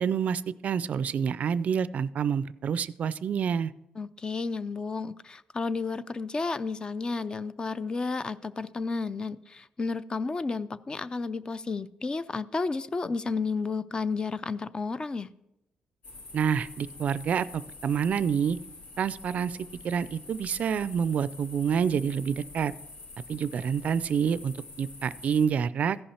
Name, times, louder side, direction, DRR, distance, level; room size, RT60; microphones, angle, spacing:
voice 1, 0.0-3.7 16.3-18.6 19.0-19.6 19.8-22.7 23.3-26.0, right 7 dB, 55° right, 17 dB, 0.4 m, -28 dB
voice 2, 4.0-15.3, left 4 dB, 30° left, 15 dB, 0.4 m, -32 dB
sound 1, 16.0-25.5, left 3 dB, 70° left, 2.5 m, -47 dB
15.0 x 5.5 x 4.3 m, 0.86 s
cardioid pair, 95°, 3 cm